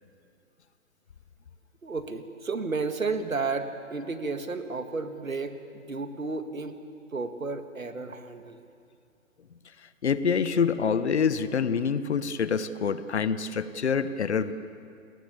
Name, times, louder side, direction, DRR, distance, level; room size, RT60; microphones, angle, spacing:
voice 1, 1.8-6.8 7.1-8.7, right 4 dB, 80° right, 8 dB, 2.1 m, -32 dB
voice 2, 10.0-14.5, left 6 dB, 55° left, 13 dB, 1.3 m, -26 dB
29.5 x 21.0 x 7.1 m, 2.4 s
figure-of-eight pair, 140°, 40 cm